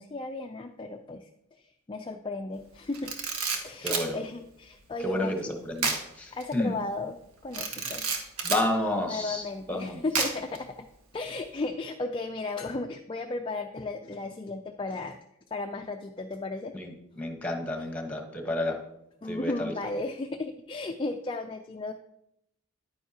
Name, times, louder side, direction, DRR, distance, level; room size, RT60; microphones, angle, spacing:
voice 1, 0.0-3.2 3.6-5.5 6.3-8.3 9.1-10.9 11.1-15.2 15.5-16.7 19.2-21.9, left 2 dB, 20° left, 5 dB, 0.3 m, -35 dB
Camera, 2.9-4.1 5.8-6.0 6.4-6.5 7.5-8.7 10.1-10.6, right 4 dB, 85° right, 1.3 m, -30 dB
voice 2, 3.8-4.2 5.0-6.8 7.8-7.9 8.4-10.0 16.7-18.8 19.3-19.7, left 1 dB, 5° left, 2 dB, 1.2 m, -31 dB
10.0 x 9.2 x 2.9 m, 0.81 s
head